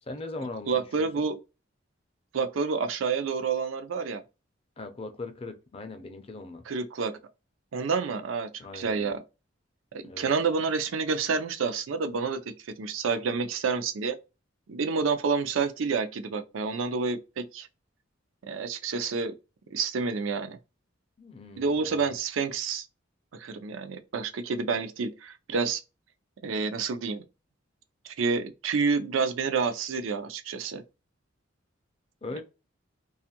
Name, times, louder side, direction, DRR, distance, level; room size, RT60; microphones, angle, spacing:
voice 1, 0.0-1.3 4.8-6.7 8.6-9.1 10.0-10.3 21.2-22.2 32.2-32.4, left 2 dB, 30° left, 0.4 m, -40 dB
voice 2, 0.7-1.4 2.3-4.2 6.7-7.1 7.7-9.2 9.9-14.2 14.7-17.7 18.4-19.3 19.7-20.6 21.6-22.9 23.3-25.8 26.4-27.2 28.0-30.8, right 5 dB, 85° right, 0.4 m, -29 dB
2.5 x 2.4 x 2.8 m
head